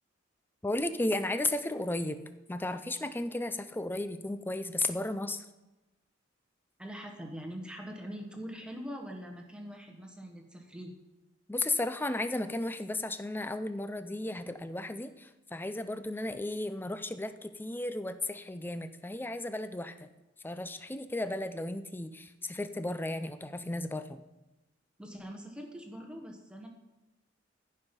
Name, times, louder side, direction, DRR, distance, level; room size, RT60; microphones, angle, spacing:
voice 1, 0.6-2.2 2.5-5.4 11.5-20.1 20.4-24.2, left 2 dB, 10° left, 11 dB, 0.5 m, -34 dB
voice 2, 6.8-10.9 25.0-26.7, equal, 5° right, 2 dB, 1.3 m, -43 dB
14.0 x 5.5 x 5.3 m, 1.0 s
head